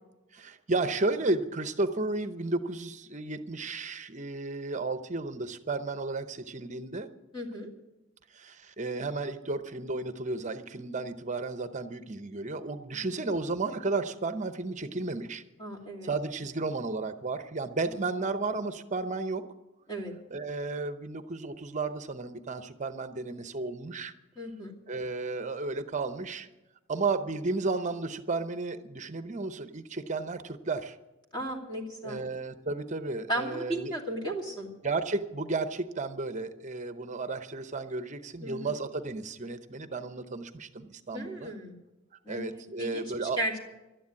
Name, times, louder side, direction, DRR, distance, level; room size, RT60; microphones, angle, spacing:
voice 1, 0.3-7.1 8.3-15.4 16.0-19.4 20.3-24.1 24.9-26.5 26.9-31.0 32.0-33.9 34.8-41.5 42.3-43.6, right 3 dB, 35° right, 11 dB, 0.8 m, -33 dB
voice 2, 7.3-7.7 12.9-13.0 15.6-16.1 19.9-20.1 24.4-24.7 31.3-32.3 33.3-34.7 38.4-38.7 41.1-41.7 42.2-43.5, right 1 dB, 25° left, 0 dB, 2.6 m, -35 dB
12.5 x 10.0 x 9.5 m, 1.0 s
head